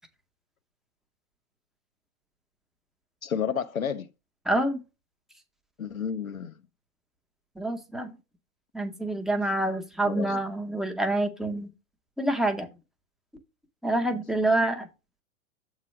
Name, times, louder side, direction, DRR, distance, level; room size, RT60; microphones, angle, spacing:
voice 1, 3.2-4.1 5.8-6.6 10.0-10.4, left 7 dB, 80° left, 0.7 m, -31 dB
voice 2, 4.5-4.8 7.6-8.1 8.7-11.7 12.2-12.7 13.8-14.9, right 1 dB, ahead, 0.5 m, -27 dB
7.4 x 3.2 x 5.9 m
figure-of-eight pair, 105°, 41 cm